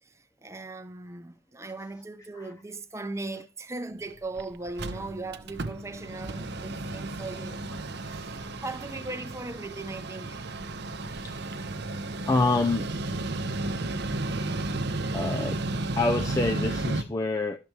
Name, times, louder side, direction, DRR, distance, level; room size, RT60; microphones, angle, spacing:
voice 1, 0.0-7.6 8.1-10.5, right 2 dB, 15° right, 0.8 m, -38 dB
Mechanical fan, 4.0-4.1 4.4-4.5 4.7-17.0, right 2 dB, 55° right, 0.8 m, -33 dB
voice 2, 12.3-12.9 15.1-15.6 15.9-17.6, left 3 dB, 15° left, 0.4 m, -27 dB
12.0 x 6.7 x 4.6 m
head